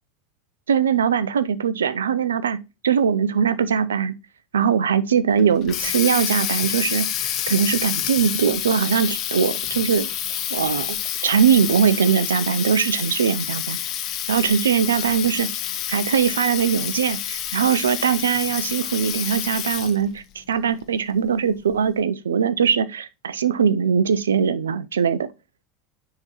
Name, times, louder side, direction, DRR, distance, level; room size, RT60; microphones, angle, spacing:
voice 1, 0.7-4.1 4.5-7.1 7.5-10.1 10.5-11.0 11.2-13.8 14.3-15.5 15.9-25.3, right 7 dB, 75° right, 0.5 m, -21 dB
Water tap faucet, 5.4-20.1, left 11 dB, 45° left, 1.0 m, -28 dB
9.7 x 3.7 x 3.0 m
figure-of-eight pair, 80°, 0 cm